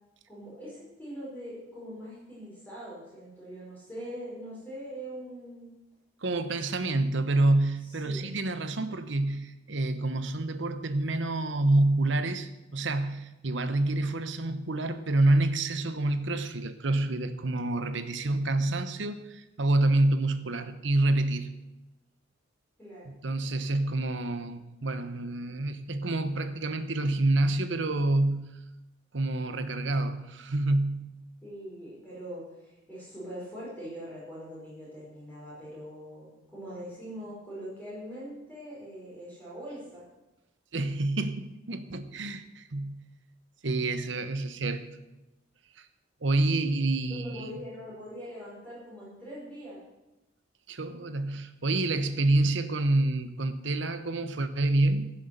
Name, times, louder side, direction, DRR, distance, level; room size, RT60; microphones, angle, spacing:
voice 1, 0.3-5.7 7.8-8.3 22.8-23.1 31.4-40.0 47.1-49.8, equal, 10° left, -8 dB, 4.8 m, -42 dB
voice 2, 6.2-21.5 23.2-28.5 29.1-31.1 40.7-43.0 43.6-44.9 45.8-45.9 46.2-47.6 50.7-55.1, right 2 dB, 65° right, 10 dB, 1.0 m, -27 dB
14.5 x 7.7 x 6.7 m, 0.98 s
head